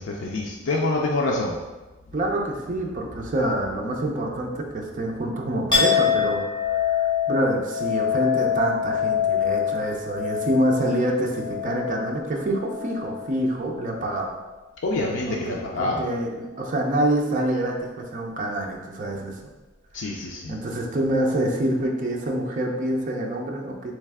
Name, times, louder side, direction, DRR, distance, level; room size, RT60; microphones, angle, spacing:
voice 1, 0.0-1.6 14.8-16.0 19.9-20.5, left 2 dB, 75° left, -2 dB, 0.4 m, -26 dB
voice 2, 2.1-14.3 15.3-19.5 20.5-23.9, right 1 dB, 45° right, 0 dB, 0.5 m, -26 dB
Chink clink, 5.7-13.4 13.7-14.4, left 8 dB, 25° left, 1.3 m, -26 dB
3.2 x 3.2 x 3.5 m, 1.2 s
head